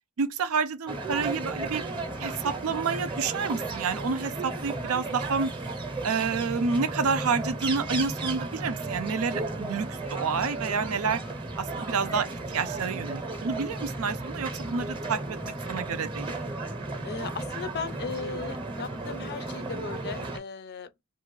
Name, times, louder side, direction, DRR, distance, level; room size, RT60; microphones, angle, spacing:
voice 1, 0.2-1.8 2.2-5.5 6.0-11.2 11.6-12.3 12.5-16.4, right 5 dB, 90° right, 0.5 m, -29 dB
sound 1, 0.9-20.4, right 2 dB, 25° right, 0.7 m, -34 dB
voice 2, 17.0-21.0, left 5 dB, 50° left, 0.4 m, -37 dB
2.6 x 2.4 x 3.0 m
head